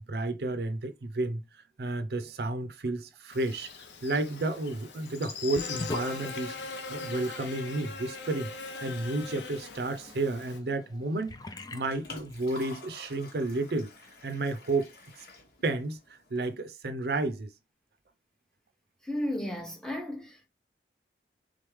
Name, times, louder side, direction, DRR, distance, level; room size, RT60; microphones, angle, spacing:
voice 1, 0.0-1.4 1.8-3.7 4.0-8.5 8.8-11.3 11.7-13.9 14.2-14.9 15.1-15.3 15.6-17.5, right 2 dB, 60° right, 0.5 m, -31 dB
Buzz, 3.3-10.6, left 4 dB, 80° left, 0.8 m, -41 dB
Sink (filling or washing) / Bathtub (filling or washing), 5.5-12.9, left 3 dB, 20° left, 0.4 m, -45 dB
Liquid, 11.5-16.5, left 3 dB, 60° left, 1.1 m, -49 dB
voice 2, 19.0-20.5, left 1 dB, 5° left, 0.8 m, -34 dB
3.7 x 3.5 x 3.1 m
head